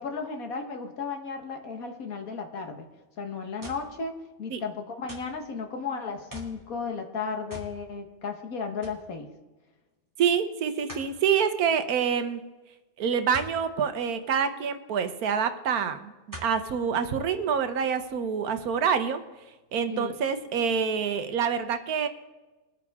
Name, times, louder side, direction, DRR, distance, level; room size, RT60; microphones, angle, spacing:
voice 1, 0.0-2.8 3.2-9.3 19.9-20.1, left 5 dB, 75° left, 5 dB, 1.8 m, -34 dB
sound 1, 3.6-3.9 5.1-5.4 6.3-6.6 7.5-7.8 8.2-8.3 8.8-9.0 10.9-11.1 13.3-13.6 15.0-15.1 16.3-16.6 17.3-17.4, equal, 15° right, 2.7 m, -42 dB
voice 2, 10.2-12.4 13.0-16.1 16.4-19.2 19.7-22.1, right 7 dB, 85° right, 9 dB, 1.4 m, -26 dB
23.0 x 8.9 x 3.6 m, 1.1 s
omnidirectional pair, 1.5 m